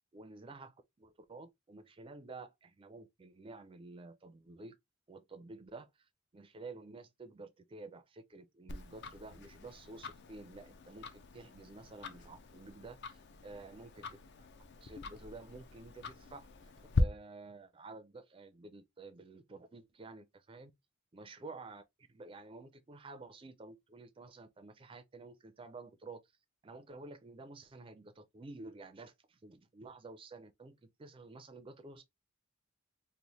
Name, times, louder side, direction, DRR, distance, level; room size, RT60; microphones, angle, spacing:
voice 1, 0.1-4.8 5.1-14.5 14.8-20.7 21.1-21.8 22.1-26.2 26.6-32.0, right 3 dB, 25° right, 0.4 m, -51 dB
Tick-tock, 8.7-17.0, left 4 dB, 55° left, 0.5 m, -42 dB
3.1 x 2.1 x 3.9 m
head